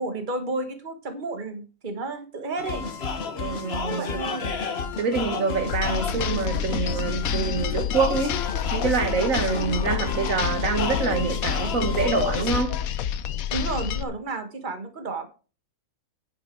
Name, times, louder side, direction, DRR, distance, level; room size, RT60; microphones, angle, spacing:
voice 1, 0.0-2.9 3.9-4.5 13.5-15.3, right 3 dB, 35° right, 1.7 m, -32 dB
sound 1, 2.6-12.6, left 5 dB, 50° left, 1.3 m, -31 dB
voice 2, 3.4-4.2 4.5-4.6 5.0-8.4 8.7-12.8, right 5 dB, 70° right, 1.7 m, -26 dB
sound 2, 5.7-14.0, left 9 dB, 80° left, 1.2 m, -29 dB
9.8 x 9.0 x 4.7 m
omnidirectional pair, 1.5 m